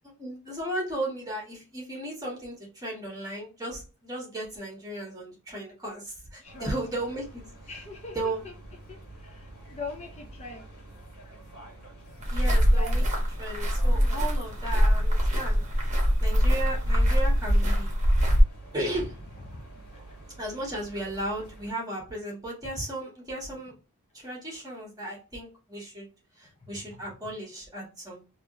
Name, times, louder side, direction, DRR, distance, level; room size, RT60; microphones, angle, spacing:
voice 1, 0.2-7.5 8.1-8.4 12.3-13.0 13.4-15.6 16.2-17.9 18.7-19.2 20.4-23.7 24.1-26.1 26.4-28.2, right 1 dB, 15° right, -2 dB, 1.5 m, -35 dB
sound 1, 6.4-21.7, right 2 dB, 75° left, 1.6 m, -48 dB
voice 2, 6.4-6.7 7.7-8.5 8.9-10.7 12.4-13.0 13.9-14.3 19.5-20.2, left 3 dB, 30° left, 2 dB, 0.6 m, -42 dB
sound 2, 12.2-18.4, equal, 35° right, 1.1 m, -23 dB
3.4 x 2.9 x 2.6 m, 0.31 s
head